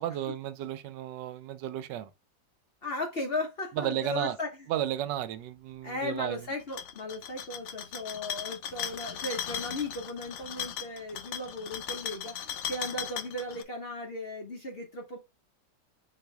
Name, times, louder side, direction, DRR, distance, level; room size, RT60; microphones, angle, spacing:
voice 1, 0.0-2.1 3.8-4.4 4.7-6.4, right 12 dB, 80° right, 1.2 m, -33 dB
voice 2, 2.8-4.6 5.8-15.2, left 2 dB, 45° left, 0.9 m, -36 dB
sound 1, 6.6-13.6, left 8 dB, 75° left, 0.8 m, -37 dB
4.1 x 2.9 x 4.5 m
omnidirectional pair, 1.9 m